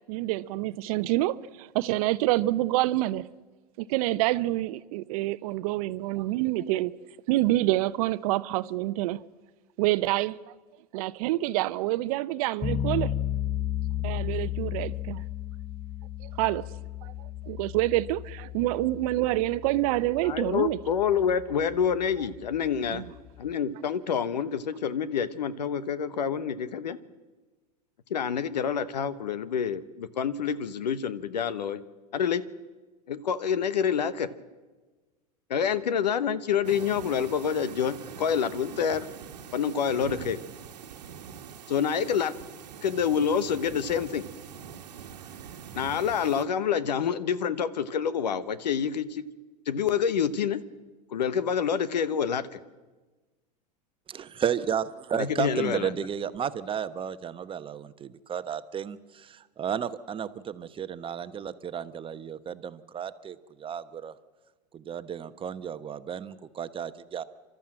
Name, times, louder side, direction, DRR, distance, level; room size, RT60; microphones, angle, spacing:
voice 1, 0.1-3.2 3.8-6.9 7.3-9.2 9.8-10.4 10.9-13.1 14.0-15.2 16.4-16.7 17.0-17.1 17.5-20.8 22.9-23.1, right 17 dB, 60° right, 0.8 m, -27 dB
sound 1, 12.6-23.5, left 11 dB, 10° left, 0.9 m, -34 dB
voice 2, 20.2-23.0 23.4-27.0 28.1-31.8 32.1-32.4 33.1-34.3 35.5-39.1 39.5-40.4 41.7-42.3 42.8-44.2 45.7-49.2 49.7-50.6 51.1-52.6 55.2-55.9, left 7 dB, 80° left, 1.1 m, -27 dB
sound 2, 36.6-46.4, right 7 dB, 80° right, 1.4 m, -43 dB
voice 3, 54.1-64.1 64.7-67.2, right 8 dB, 25° right, 1.0 m, -33 dB
30.0 x 13.0 x 7.6 m
hypercardioid pair, 95°, 21 cm